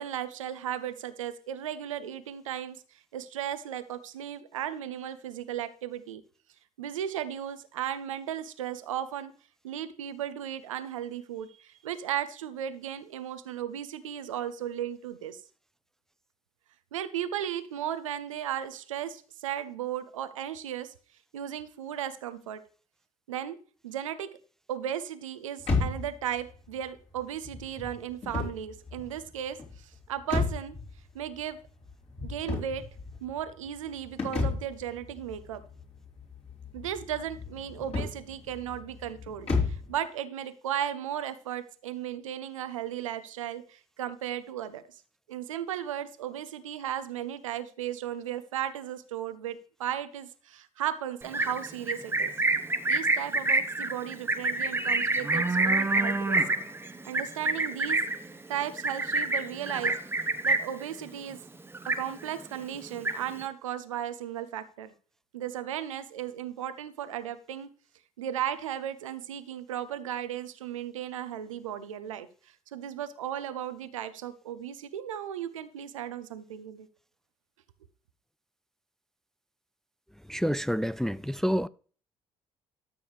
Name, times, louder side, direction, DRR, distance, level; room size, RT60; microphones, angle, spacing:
voice 1, 0.0-6.2 6.8-9.3 9.6-15.4 16.9-20.9 21.3-22.6 23.3-23.6 23.8-24.4 24.7-30.8 31.1-31.6 32.2-32.9 33.2-35.6 36.7-44.8 45.3-52.3 52.9-56.4 57.0-58.0 58.5-60.0 60.4-61.4 61.9-64.9 65.3-67.7 68.2-76.9, right 10 dB, 80° right, 0.7 m, -35 dB
sound 1, 25.6-39.9, left 4 dB, 40° left, 3.7 m, -34 dB
Livestock farm animals working animals, 51.2-60.8 61.2-61.5 61.7-62.4 62.7-63.4, right 2 dB, 15° right, 0.9 m, -27 dB
voice 2, 80.3-81.7, equal, 5° left, 0.3 m, -28 dB
13.0 x 7.0 x 3.3 m
figure-of-eight pair, 45°, 17 cm